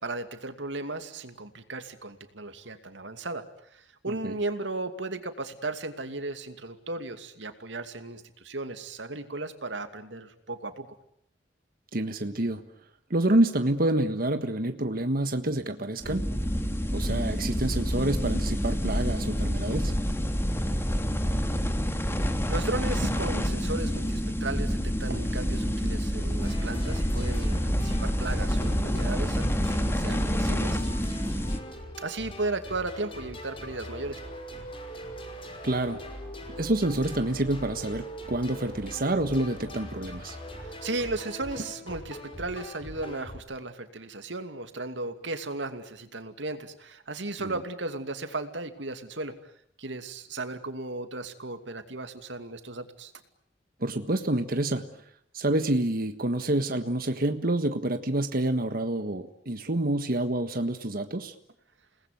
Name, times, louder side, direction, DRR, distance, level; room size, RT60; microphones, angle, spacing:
voice 1, 0.0-3.4 3.7-10.9 22.5-30.8 32.0-34.2 40.6-49.3 49.8-53.1, right 2 dB, 80° right, 8 dB, 2.6 m, -35 dB
voice 2, 11.9-12.6 13.1-16.3 16.9-19.9 35.6-36.0 36.5-40.4 47.4-47.5 53.8-54.9 55.3-61.3, right 1 dB, 55° right, 7 dB, 1.5 m, -28 dB
sound 1, 16.0-31.6, equal, 15° left, 2.4 m, -28 dB
sound 2, 26.4-43.4, equal, 30° left, 5.6 m, -42 dB
30.0 x 20.0 x 9.4 m, 0.72 s
head